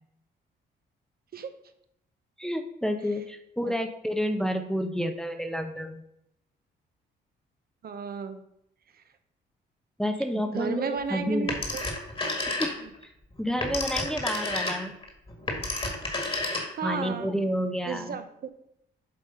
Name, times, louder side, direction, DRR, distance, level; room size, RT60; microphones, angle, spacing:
voice 1, 2.4-6.0 10.0-11.5 12.6-12.7 13.4-14.9 16.8-18.2, equal, 5° left, 6 dB, 0.7 m, -29 dB
voice 2, 7.8-8.4 8.9-9.0 10.3-11.8 12.8-12.9 14.1-14.2 16.7-17.3 17.9-18.5, right 6 dB, 50° right, 9 dB, 0.7 m, -33 dB
Telephone, 11.5-13.0 13.4-17.0, left 2 dB, 25° left, 1.8 m, -31 dB
7.7 x 3.5 x 5.5 m, 0.76 s
cardioid pair, 90°, 20 cm